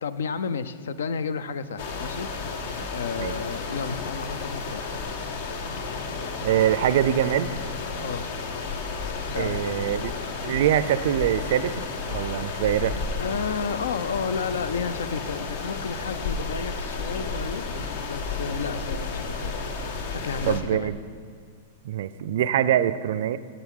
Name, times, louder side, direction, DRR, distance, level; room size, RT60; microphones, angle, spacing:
voice 1, 0.0-4.9 8.0-8.2 9.3-9.9 12.6-19.5 20.1-20.9, left 6 dB, 80° left, 14 dB, 0.4 m, -32 dB
sound 1, 1.8-20.6, left 4 dB, 65° left, 0.8 m, -32 dB
voice 2, 6.4-7.5 9.3-10.1 10.4-11.7 12.1-13.0 20.5-21.0 21.8-23.4, right 11 dB, 65° right, 15 dB, 0.3 m, -23 dB
7.9 x 7.6 x 3.6 m, 2.2 s
hypercardioid pair, 115°, 0 cm